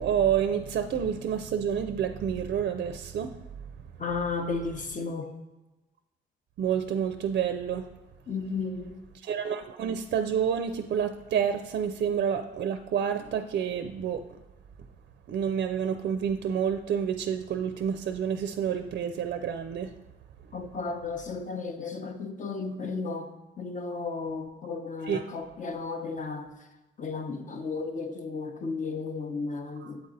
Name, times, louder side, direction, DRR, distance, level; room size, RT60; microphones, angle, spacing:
voice 1, 0.0-3.3 6.6-7.8 9.2-14.2 15.3-19.9 25.1-25.2, right 8 dB, 55° right, 8 dB, 0.4 m, -28 dB
voice 2, 4.0-5.3 8.3-9.0 20.5-23.3 23.6-26.5 27.0-30.0, left 4 dB, 40° left, 6 dB, 0.8 m, -34 dB
8.0 x 4.0 x 3.9 m, 1.1 s
cardioid pair, 90°, 20 cm